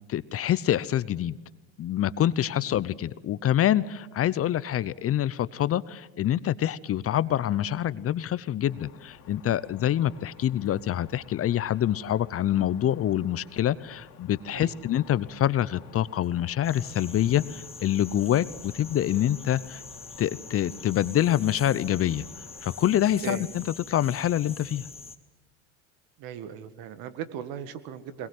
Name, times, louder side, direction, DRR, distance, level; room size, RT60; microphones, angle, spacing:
voice 1, 0.1-1.4 1.8-19.8 20.2-22.2 22.6-24.9, left 11 dB, 35° left, 18 dB, 0.8 m, -26 dB
sound 1, 8.7-23.2, left 9 dB, 65° left, 2.5 m, -53 dB
voice 2, 14.5-14.8 17.2-17.5 23.2-23.5 26.2-28.3, right 9 dB, 65° right, 11 dB, 1.8 m, -38 dB
sound 2, 16.6-25.2, left 4 dB, 15° left, 1.8 m, -44 dB
22.0 x 21.0 x 7.9 m, 1.1 s
hypercardioid pair, 85°, 38 cm